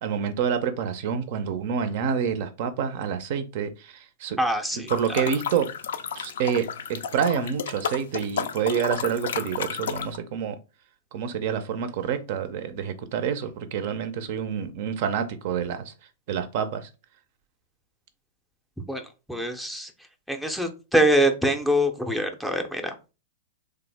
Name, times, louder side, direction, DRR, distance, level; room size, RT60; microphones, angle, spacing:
voice 1, 0.0-4.4 4.7-5.7 6.2-10.6 11.1-15.9 16.3-16.9, right 7 dB, 55° right, 0.4 m, -28 dB
voice 2, 4.4-4.8 18.9-19.0 19.3-19.9 20.3-22.8, equal, ahead, 0.4 m, -23 dB
sound 1, 4.9-10.2, left 7 dB, 75° left, 0.4 m, -32 dB
3.3 x 2.0 x 3.3 m
hypercardioid pair, 130°, 0 cm